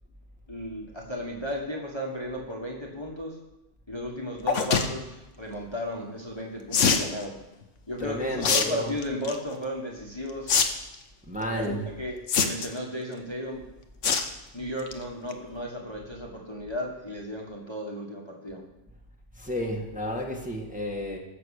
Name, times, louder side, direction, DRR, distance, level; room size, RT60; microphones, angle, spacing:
voice 1, 0.5-3.4 3.9-7.3 7.9-10.5 11.4-13.6 14.5-18.6, equal, 20° left, -1 dB, 1.6 m, -35 dB
sound 1, 4.5-4.9 6.7-7.1 8.4-8.7 9.0-9.4 10.5-10.6 10.9-11.0 12.3-12.8 14.0-14.3 14.7-14.9 15.3-15.4 15.6-15.7, left 6 dB, 70° left, 1.4 m, -23 dB
voice 2, 8.0-8.9 11.3-11.9 19.4-21.2, equal, 5° right, -1 dB, 1.6 m, -31 dB
15.0 x 6.8 x 6.6 m, 0.95 s
omnidirectional pair, 1.3 m